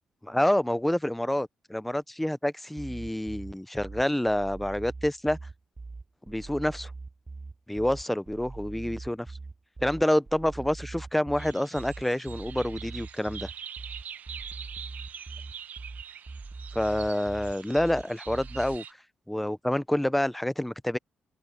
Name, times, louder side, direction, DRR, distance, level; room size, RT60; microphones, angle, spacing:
voice 1, 0.2-5.4 6.3-6.9 7.7-9.3 9.8-13.5 16.7-18.8 19.3-21.0, left 1 dB, 5° left, 0.5 m, -28 dB
sound 1, 2.8-18.8, right 3 dB, 25° right, 7.1 m, -42 dB
sound 2, 11.4-18.9, right 8 dB, 65° right, 0.8 m, -44 dB
open air
cardioid pair, 95°, 3 cm